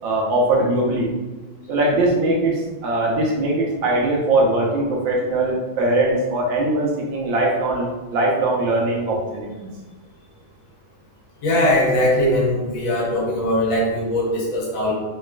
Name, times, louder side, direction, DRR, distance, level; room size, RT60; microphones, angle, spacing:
voice 1, 0.0-1.1 1.7-9.7, right 2 dB, 75° right, -2 dB, 1.4 m, -21 dB
voice 2, 11.4-14.9, left 1 dB, 80° left, -3 dB, 1.6 m, -20 dB
3.9 x 2.3 x 2.2 m, 1.2 s
omnidirectional pair, 2.1 m